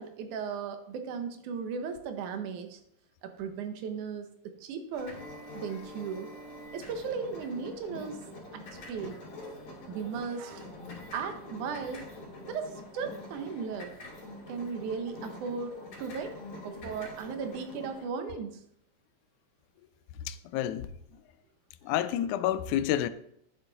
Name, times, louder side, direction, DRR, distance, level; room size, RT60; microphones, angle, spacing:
voice 1, 0.0-2.8 3.2-5.2 5.5-6.3 6.7-8.2 8.5-9.1 9.5-9.6 9.9-10.7 11.1-12.1 12.5-13.9 14.5-16.4 16.6-18.6, right 5 dB, 80° right, 2.4 m, -36 dB
sound 1, 4.9-18.1, left 1 dB, 50° left, 3.4 m, -45 dB
voice 2, 20.3-20.9 21.8-23.1, left 11 dB, 85° left, 2.0 m, -29 dB
10.0 x 7.5 x 4.0 m
omnidirectional pair, 3.5 m